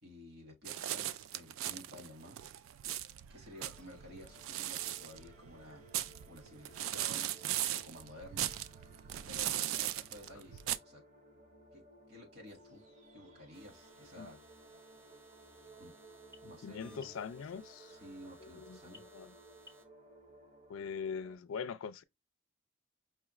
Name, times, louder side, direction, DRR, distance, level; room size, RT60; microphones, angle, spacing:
voice 1, 0.0-2.4 3.3-5.8 6.3-8.5 9.2-11.0 11.7-11.8 12.1-12.8 13.1-14.4 15.8-15.9 16.5-17.2 17.9-19.0, left 1 dB, 55° right, 1.7 m, -53 dB
sound 1, 0.6-10.8, right 12 dB, 90° right, 0.3 m, -38 dB
sound 2, 3.6-21.4, right 2 dB, 40° right, 0.9 m, -59 dB
sound 3, 13.5-19.9, equal, 15° right, 0.5 m, -62 dB
voice 2, 16.4-17.9 18.4-19.3 20.7-22.0, left 6 dB, 85° left, 0.4 m, -42 dB
5.5 x 2.4 x 3.0 m
head